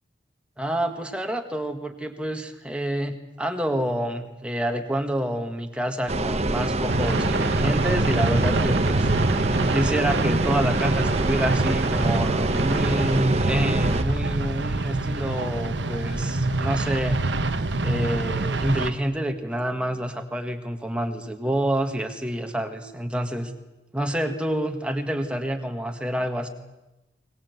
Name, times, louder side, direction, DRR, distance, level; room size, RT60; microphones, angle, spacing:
voice 1, 0.6-9.1 9.7-17.2 17.8-23.5 23.9-26.5, right 1 dB, 5° right, 5 dB, 1.7 m, -28 dB
sound 1, 6.1-14.0, right 2 dB, 35° right, 0.9 m, -25 dB
sound 2, 6.9-18.9, right 2 dB, 85° right, 1.2 m, -25 dB
22.0 x 20.0 x 8.2 m, 1.0 s
head